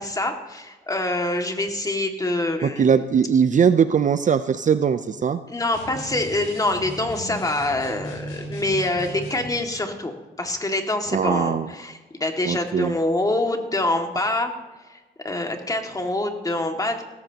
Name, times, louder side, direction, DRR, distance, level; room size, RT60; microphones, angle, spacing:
voice 1, 0.0-2.9 5.5-14.5 14.9-15.0 15.2-17.0, left 2 dB, 20° left, 4 dB, 2.1 m, -25 dB
voice 2, 2.6-5.4 11.1-11.7 12.4-12.9, right 7 dB, 40° right, 11 dB, 0.6 m, -20 dB
sound 1, 5.7-9.6, equal, 90° left, 3.5 m, -36 dB
17.5 x 14.5 x 2.9 m, 1.2 s
cardioid pair, 90°, 20 cm